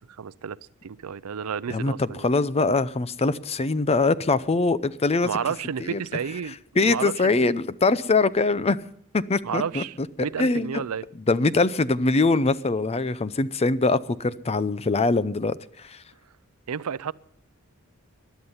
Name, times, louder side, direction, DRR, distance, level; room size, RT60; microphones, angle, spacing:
voice 1, 0.1-2.3 5.2-6.5 6.8-7.4 9.4-11.0 16.7-17.1, right 7 dB, 85° right, 0.5 m, -31 dB
voice 2, 1.7-5.3 5.8-6.0 6.8-8.8 9.1-10.1 10.4-10.8 11.3-16.0, left 3 dB, 30° left, 0.6 m, -23 dB
21.0 x 11.5 x 5.6 m
head